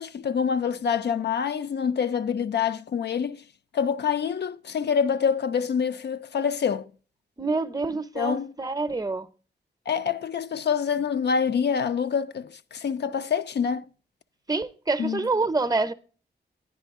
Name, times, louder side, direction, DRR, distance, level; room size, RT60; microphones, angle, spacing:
voice 1, 0.0-3.4 3.7-6.9 8.2-8.5 9.9-13.9 15.0-15.2, left 7 dB, 70° left, 0.5 m, -26 dB
voice 2, 7.4-9.3 14.5-15.9, right 3 dB, 20° right, 0.6 m, -27 dB
10.5 x 10.0 x 3.5 m
wide cardioid pair, 110°, 18 cm